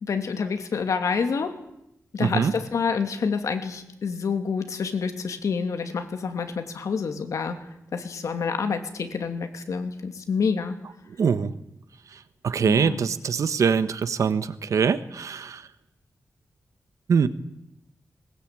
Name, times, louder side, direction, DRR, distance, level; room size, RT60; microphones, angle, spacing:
voice 1, 0.0-1.5 2.1-7.6 7.9-10.8 12.6-13.0, left 5 dB, 80° left, 7 dB, 2.7 m, -28 dB
voice 2, 2.2-2.5 11.2-11.5 12.4-15.6 17.1-17.3, right 6 dB, 80° right, 13 dB, 1.3 m, -23 dB
20.5 x 20.5 x 9.0 m, 0.83 s
wide cardioid pair, 150°, 5 cm